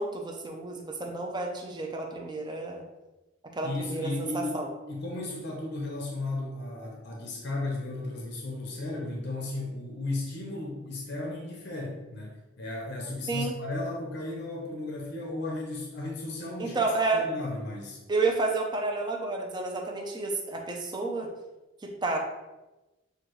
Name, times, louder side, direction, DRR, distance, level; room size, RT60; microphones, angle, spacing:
voice 1, 0.0-2.8 3.5-4.7 13.3-13.5 16.6-17.3 18.1-21.3 21.8-22.2, right 3 dB, 20° right, 1 dB, 0.6 m, -30 dB
voice 2, 3.6-16.8 17.1-18.0, left 2 dB, 60° left, -1 dB, 0.7 m, -35 dB
6.6 x 2.3 x 3.1 m, 1.1 s
head